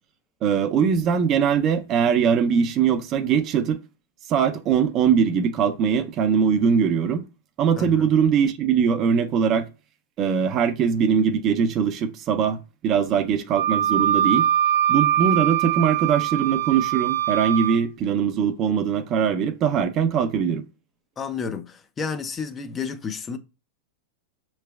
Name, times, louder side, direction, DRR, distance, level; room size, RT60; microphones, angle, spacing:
voice 1, 0.4-3.8 4.3-7.2 7.6-9.7 10.2-12.6 12.8-14.5 14.9-20.6, right 7 dB, 35° right, 0.5 m, -21 dB
voice 2, 7.8-8.1 21.2-23.4, left 5 dB, 20° left, 0.5 m, -31 dB
Wind instrument woodwind instrument, 13.5-17.8, right 11 dB, 80° right, 0.6 m, -22 dB
5.7 x 3.1 x 2.3 m
hypercardioid pair, 130°, 0 cm